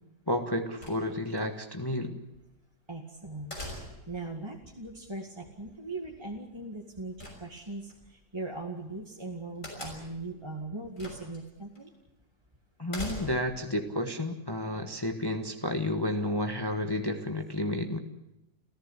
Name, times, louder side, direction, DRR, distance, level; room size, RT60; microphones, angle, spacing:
voice 1, 0.3-2.2 12.8-18.0, left 1 dB, 15° left, 5 dB, 1.3 m, -31 dB
sound 1, 0.8-1.4 3.5-4.2 7.2-7.9 9.6-10.3 11.0-11.4 11.8-11.9 12.9-13.6, left 1 dB, 55° left, 6.7 m, -41 dB
voice 2, 2.9-3.6 4.1-11.9, right 2 dB, 15° right, 0 dB, 2.0 m, -39 dB
29.5 x 15.0 x 8.2 m, 0.93 s
omnidirectional pair, 1.7 m